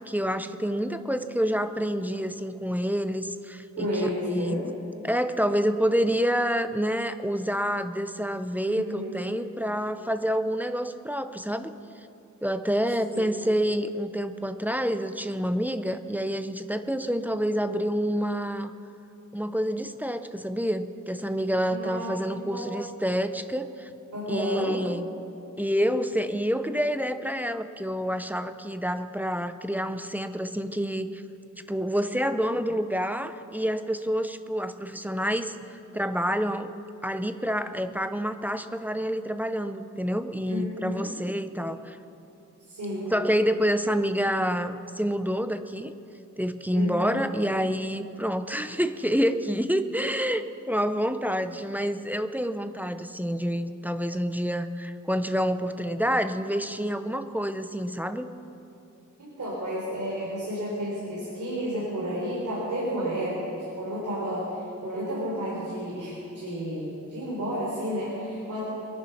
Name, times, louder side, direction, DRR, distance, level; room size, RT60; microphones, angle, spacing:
voice 1, 0.0-4.6 5.0-11.7 12.4-18.7 19.3-23.9 24.3-25.1 25.6-31.2 31.7-36.7 37.0-42.0 43.1-45.9 46.4-58.3, equal, 5° right, 9 dB, 0.5 m, -28 dB
voice 2, 3.8-4.6 8.7-9.3 13.1-13.2 21.7-22.7 24.1-24.8 40.5-41.1 42.7-43.1 46.7-47.3 57.2-57.3 59.2-68.7, equal, 65° right, -7 dB, 3.8 m, -32 dB
22.5 x 10.0 x 5.8 m, 2.8 s
wide cardioid pair, 145°, 31 cm